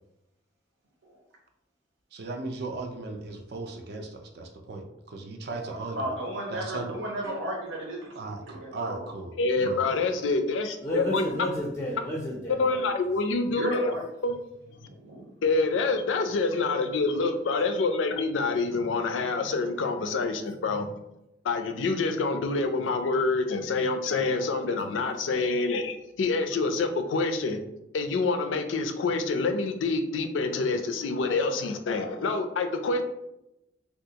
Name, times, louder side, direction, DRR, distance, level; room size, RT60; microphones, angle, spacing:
voice 1, 2.1-6.1 6.5-6.9 8.2-9.9, right 3 dB, 55° right, 2 dB, 0.4 m, -37 dB
voice 2, 5.6-8.1 8.4-9.1 12.6-12.9 13.4-14.0 15.0-15.2, right 1 dB, 85° right, -3 dB, 0.7 m, -34 dB
voice 3, 9.4-11.2 12.6-13.9 14.2-14.4 15.4-20.9 21.4-27.6 27.9-33.0, left 3 dB, 85° left, 6 dB, 0.4 m, -27 dB
voice 4, 10.8-12.7, equal, 15° left, -1 dB, 0.4 m, -31 dB
3.5 x 2.3 x 2.8 m, 0.88 s
head